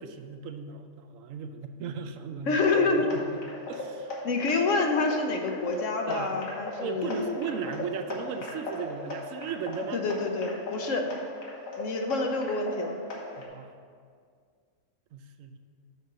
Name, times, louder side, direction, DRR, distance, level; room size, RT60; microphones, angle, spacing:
voice 1, 0.0-3.3 3.7-4.3 6.1-6.3 6.8-10.0 13.4-13.7 15.1-15.6, right 6 dB, 80° right, 8 dB, 1.0 m, -37 dB
voice 2, 2.5-3.1 4.2-7.4 9.9-11.1 11.8-13.0, left 3 dB, 70° left, 4 dB, 1.2 m, -27 dB
sound 1, 2.6-13.5, left 2 dB, 85° left, 1.6 m, -38 dB
6.6 x 5.1 x 6.7 m, 2.1 s
omnidirectional pair, 1.4 m